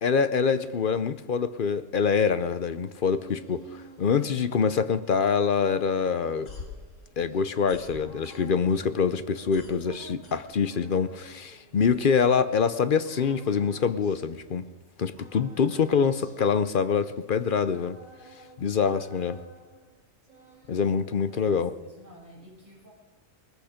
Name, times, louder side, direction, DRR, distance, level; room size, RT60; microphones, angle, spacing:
voice 1, 0.0-6.5 7.2-14.7 15.0-18.0 18.6-19.4 20.7-21.7, left 6 dB, 50° left, 12 dB, 0.7 m, -25 dB
sound 1, 2.7-12.6 13.0-14.9 15.2-18.7 18.9-19.9 20.2-21.2, right 2 dB, 40° right, 5.3 m, -52 dB
sound 2, 6.4-8.8 9.1-11.0, left 4 dB, 70° left, 2.5 m, -45 dB
voice 2, 21.2-22.9, equal, 15° right, -4 dB, 6.2 m, -51 dB
20.0 x 14.5 x 5.1 m, 1.3 s
omnidirectional pair, 1.4 m